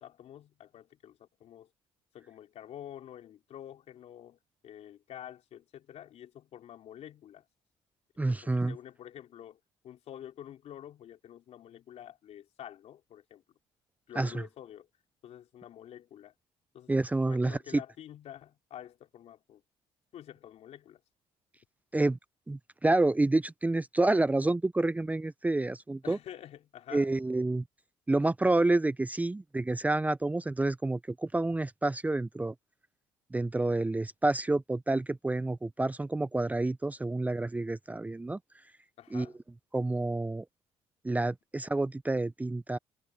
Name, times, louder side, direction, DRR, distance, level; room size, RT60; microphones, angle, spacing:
voice 1, 0.0-1.7 2.1-7.5 8.2-13.6 14.1-14.9 15.2-16.3 16.7-16.9 17.2-19.6 20.1-21.0 26.0-27.1 39.0-39.4, left 11 dB, 65° left, 3.8 m, -48 dB
voice 2, 8.2-8.8 14.2-14.3 16.9-17.6 21.9-22.2 22.5-26.2 26.9-27.6 28.1-32.5 33.3-38.4 39.1-39.3 39.7-40.4 41.0-42.8, right 2 dB, 15° right, 0.6 m, -28 dB
supercardioid pair, 75°, 12 cm